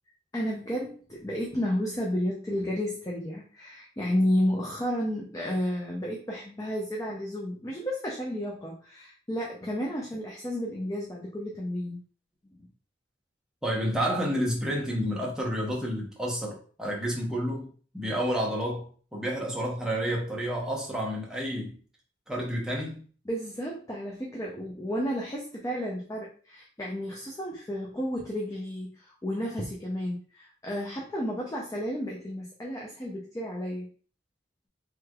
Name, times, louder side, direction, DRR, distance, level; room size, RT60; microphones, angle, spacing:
voice 1, 0.3-12.0 23.2-33.9, equal, 20° left, -2 dB, 0.4 m, -32 dB
voice 2, 13.6-17.7 17.9-21.8 22.3-23.0, equal, 5° right, -4 dB, 0.8 m, -30 dB
3.3 x 3.2 x 2.3 m, 0.42 s
head